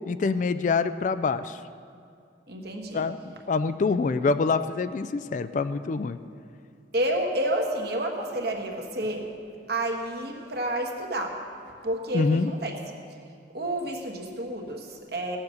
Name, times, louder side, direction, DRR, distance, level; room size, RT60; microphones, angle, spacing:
voice 1, 0.1-1.6 2.9-6.2 12.1-12.5, left 4 dB, 40° left, 12 dB, 0.3 m, -26 dB
voice 2, 2.5-3.1 6.9-9.3 9.7-11.4 11.8-13.0 13.5-15.4, right 1 dB, 55° right, 1 dB, 1.5 m, -30 dB
17.0 x 7.2 x 6.4 m, 2.4 s
head